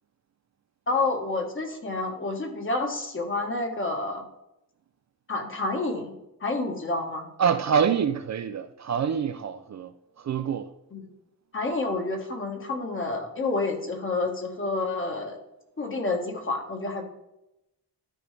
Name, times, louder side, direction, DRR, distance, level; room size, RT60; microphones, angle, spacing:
voice 1, 0.9-4.2 5.3-6.1 6.4-7.3 10.9-11.1 11.5-15.4 15.8-17.0, left 3 dB, 35° left, 1.5 m, -29 dB
voice 2, 7.4-9.9 10.2-10.7, right 7 dB, 45° right, 0.4 m, -26 dB
12.5 x 5.3 x 3.3 m
wide cardioid pair, 160°, 38 cm